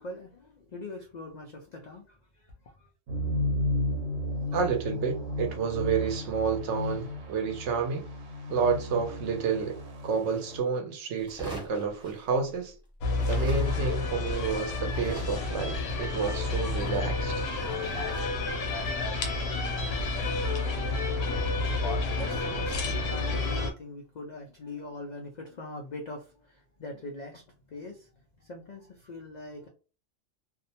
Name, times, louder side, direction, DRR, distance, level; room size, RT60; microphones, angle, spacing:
voice 1, 0.0-2.9 20.9-29.7, left 2 dB, 80° left, 0.4 m, -43 dB
sound 1, 3.1-10.6, left 1 dB, 90° right, 1.0 m, -33 dB
voice 2, 4.5-8.0 8.5-9.8 10.0-12.7 13.3-17.4, right 5 dB, 70° right, 0.9 m, -30 dB
sound 2, 11.2-12.8 13.1-20.3, right 1 dB, 5° right, 0.6 m, -46 dB
sound 3, 13.0-23.7, left 3 dB, 65° left, 0.8 m, -30 dB
2.5 x 2.0 x 2.7 m
omnidirectional pair, 1.3 m